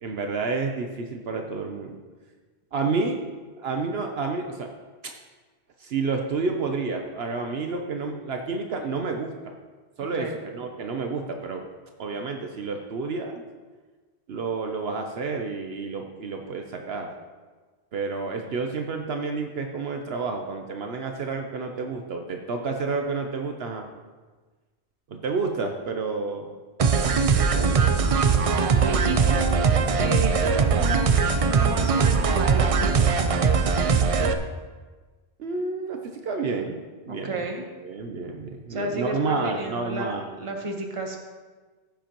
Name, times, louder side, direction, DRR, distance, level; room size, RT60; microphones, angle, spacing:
voice 1, 0.0-2.0 2.7-3.2 3.6-4.7 5.0-5.1 5.8-9.5 10.0-11.6 12.0-13.3 14.3-17.1 17.9-23.8 25.1-26.6 27.1-27.9 29.1-29.3 35.4-37.5 37.8-40.3, right 4 dB, 70° right, 3 dB, 1.0 m, -30 dB
sound 1, 26.8-34.3, right 5 dB, 45° right, 0.4 m, -21 dB
voice 2, 28.6-29.7 30.0-30.4 30.7-33.2 37.1-37.6 38.7-41.2, right 2 dB, 30° right, 2 dB, 1.1 m, -32 dB
15.5 x 7.3 x 3.0 m, 1.4 s
omnidirectional pair, 1.1 m